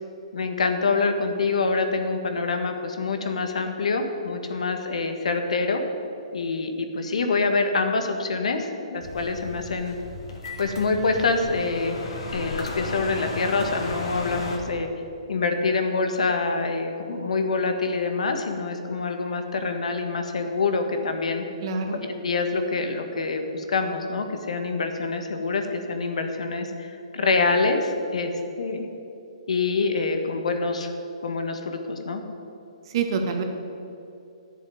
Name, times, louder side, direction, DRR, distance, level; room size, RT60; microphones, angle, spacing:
voice 1, 0.3-5.8 6.3-9.9 10.6-12.0 12.3-14.9 15.3-21.4 22.0-28.3 28.6-28.9 29.5-30.9 31.2-32.2, left 3 dB, 75° left, 6 dB, 1.6 m, -26 dB
sound 1, 9.0-14.6, left 2 dB, 60° left, 2.5 m, -34 dB
voice 2, 21.6-22.0 32.9-33.4, right 5 dB, 45° right, 4 dB, 1.7 m, -26 dB
10.5 x 7.2 x 9.3 m, 2.7 s
hypercardioid pair, 145°, 4 cm